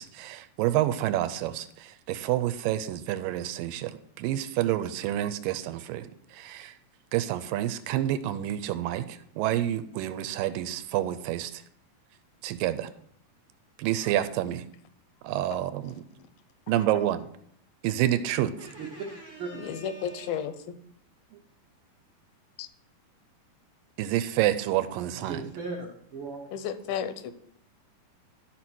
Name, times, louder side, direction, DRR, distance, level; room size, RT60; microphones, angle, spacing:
voice 1, 0.0-6.7 7.1-11.6 12.4-12.9 13.8-14.7 15.2-16.0 16.7-17.3 17.8-18.5 21.3-21.4 24.0-25.5, right 13 dB, 80° right, 12 dB, 2.2 m, -28 dB
voice 2, 18.6-20.4 25.1-26.5, right 3 dB, 65° right, -3 dB, 1.2 m, -39 dB
voice 3, 19.6-20.8 22.6-22.7 26.5-27.3, left 8 dB, 85° left, 11 dB, 2.5 m, -33 dB
12.0 x 4.2 x 6.1 m, 0.66 s
omnidirectional pair, 4.1 m